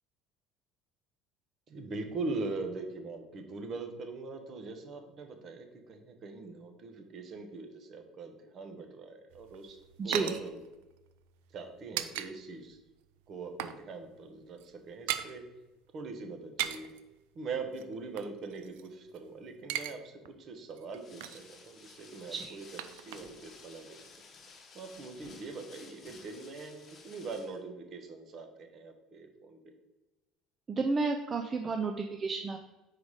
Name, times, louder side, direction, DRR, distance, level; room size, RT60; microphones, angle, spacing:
voice 1, 1.7-9.8 10.0-10.6 11.5-12.8 13.3-15.4 15.9-16.9 17.3-22.6 22.9-24.0 24.7-29.6, right 3 dB, 45° right, 5 dB, 1.0 m, -42 dB
sound 1, 9.3-12.3 12.6-12.8 13.1-13.8 14.1-14.2 14.5-15.3 16.4-17.0 17.7-19.2 19.5-20.0 20.2-20.3 20.7-21.5 22.2-23.5 23.8-23.9, right 12 dB, 90° right, 0.4 m, -39 dB
voice 2, 10.0-10.4 22.3-22.6 30.7-32.6, right 4 dB, 30° right, 5 dB, 0.4 m, -31 dB
sound 2, 20.9-27.6, left 4 dB, 40° left, 1.0 m, -54 dB
4.8 x 4.1 x 4.8 m, 1.0 s
supercardioid pair, 110°, 0 cm